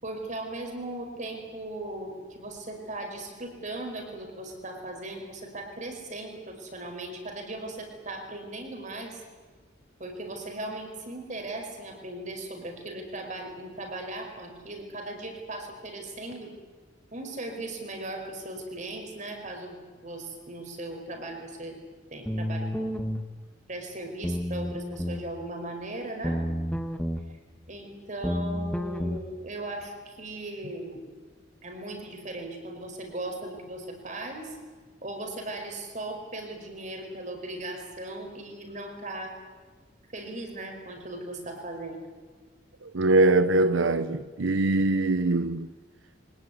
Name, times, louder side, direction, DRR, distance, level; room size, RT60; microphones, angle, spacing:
voice 1, 0.0-9.2 10.0-16.5 17.1-19.8 20.0-21.8 22.1-23.0 23.7-26.4 27.7-31.0 31.6-34.6 35.0-39.4 40.1-42.0, right 2 dB, 40° right, 5.1 m, -38 dB
sound 1, 22.3-23.2 24.2-25.2 26.2-27.2 28.2-29.2, equal, 5° left, 1.3 m, -30 dB
voice 2, 42.8-45.7, right 2 dB, 85° right, 0.8 m, -23 dB
24.5 x 19.0 x 9.7 m
head